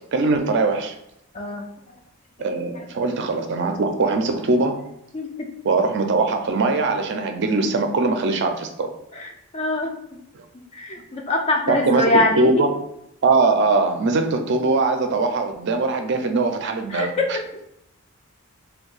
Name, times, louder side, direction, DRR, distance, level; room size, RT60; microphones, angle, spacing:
voice 1, 0.1-0.9 2.4-4.8 5.6-8.9 11.7-12.7 13.2-17.1, right 3 dB, 55° right, 5 dB, 0.4 m, -21 dB
voice 2, 1.3-1.7 5.1-5.3 9.1-10.2 10.7-12.6 16.9-17.2, left 2 dB, 30° left, 1 dB, 0.3 m, -23 dB
2.6 x 2.2 x 3.9 m, 0.79 s
head